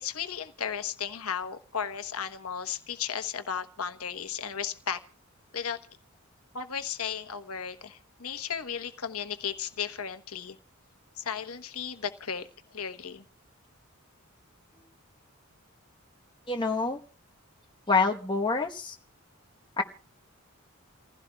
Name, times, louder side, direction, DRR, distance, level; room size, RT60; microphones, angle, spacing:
voice 1, 0.0-5.0 5.5-5.8 6.5-10.6 11.2-13.2, left 7 dB, 85° left, 9 dB, 1.1 m, -35 dB
voice 2, 16.5-17.0 17.9-18.9 19.8-19.9, left 4 dB, 20° left, 2 dB, 1.1 m, -26 dB
29.5 x 16.0 x 2.3 m, 0.36 s
head